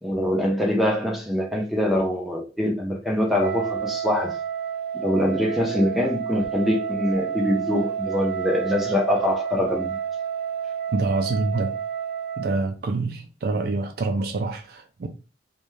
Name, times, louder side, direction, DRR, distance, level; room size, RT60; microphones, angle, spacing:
voice 1, 0.0-4.4 4.9-10.0, left 1 dB, ahead, 0.6 m, -24 dB
Wind instrument woodwind instrument, 3.3-12.7, right 8 dB, 85° right, 0.7 m, -30 dB
voice 2, 10.9-11.8 12.4-15.1, right 3 dB, 55° right, 0.4 m, -26 dB
2.6 x 2.2 x 3.1 m
head